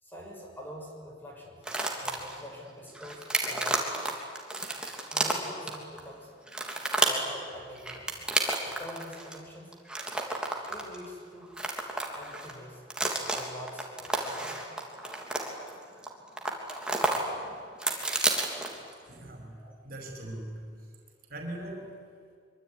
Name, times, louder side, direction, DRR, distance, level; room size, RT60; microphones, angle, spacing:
voice 1, 0.0-1.6 2.0-4.0 5.1-6.3 7.0-8.2 8.6-9.7 10.7-11.6 12.1-12.8 13.2-14.8 19.6-19.7, equal, 10° left, -1 dB, 6.5 m, -45 dB
sound 1, 1.6-2.4 2.9-6.0 6.5-7.3 7.8-9.4 9.7-11.1 11.4-12.5 12.9-16.1 16.4-17.2 17.5-18.9, right 2 dB, 5° right, 3.1 m, -31 dB
voice 2, 19.0-20.7 21.3-22.0, right 1 dB, 55° right, 3 dB, 5.3 m, -41 dB
24.5 x 24.5 x 9.9 m, 2.1 s
head